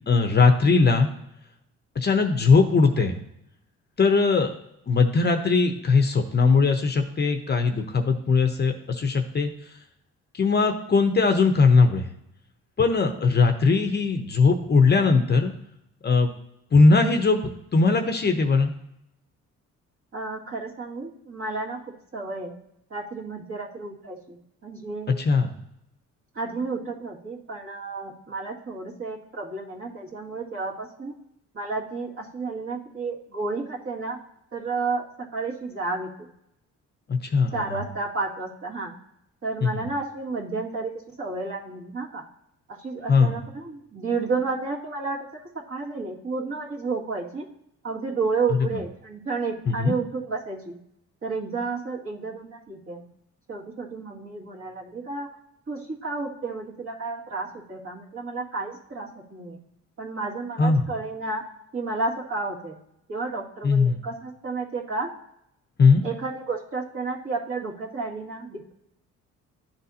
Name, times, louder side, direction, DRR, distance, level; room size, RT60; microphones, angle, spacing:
voice 1, 0.1-1.1 2.0-3.2 4.0-4.5 4.9-9.5 10.3-12.0 12.8-15.5 16.0-16.3 16.7-18.7 25.2-25.5 37.1-37.8 39.6-39.9 43.1-43.4 48.7-48.8 49.7-49.9 60.6-60.8 63.6-64.0 65.8-66.1, left 4 dB, 35° left, 5 dB, 0.8 m, -20 dB
voice 2, 20.1-21.8 22.1-22.5 22.9-24.4 24.6-25.2 26.4-31.1 31.5-34.2 34.5-35.0 35.3-36.1 37.5-38.9 39.4-40.9 41.2-42.2 42.7-45.2 45.7-47.5 47.8-50.7 51.2-53.0 53.5-55.3 55.7-59.6 60.0-61.4 61.7-62.7 63.1-65.1 66.0-68.7, right 3 dB, 45° right, -4 dB, 2.2 m, -31 dB
12.0 x 4.0 x 2.8 m, 0.79 s
cardioid pair, 90°, 30 cm